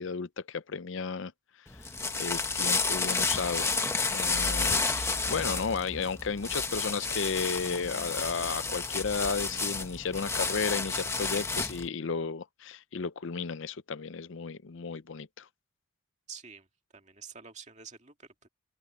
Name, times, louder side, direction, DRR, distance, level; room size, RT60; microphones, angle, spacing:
voice 1, 0.0-1.3 1.6-1.9 2.2-3.7 4.1-15.5, left 5 dB, 60° left, 0.5 m, -34 dB
sound 1, 1.7-11.9, left 4 dB, 10° left, 1.0 m, -31 dB
voice 2, 16.3-16.7 16.9-18.5, right 6 dB, 30° right, 2.3 m, -48 dB
open air
head